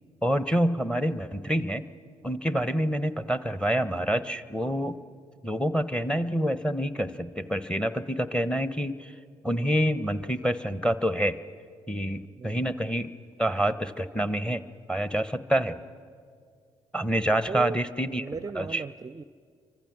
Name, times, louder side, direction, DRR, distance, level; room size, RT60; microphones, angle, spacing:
voice 1, 0.2-1.8 2.2-5.0 5.4-9.1 9.4-11.4 11.9-13.1 13.4-14.6 14.9-15.8 16.9-18.2 18.5-18.8, equal, 5° left, 14 dB, 1.1 m, -27 dB
voice 2, 12.4-12.7 17.5-17.8 18.2-19.2, right 4 dB, 25° right, 15 dB, 0.6 m, -36 dB
28.0 x 24.5 x 6.2 m, 2.2 s
figure-of-eight pair, 45°, 14 cm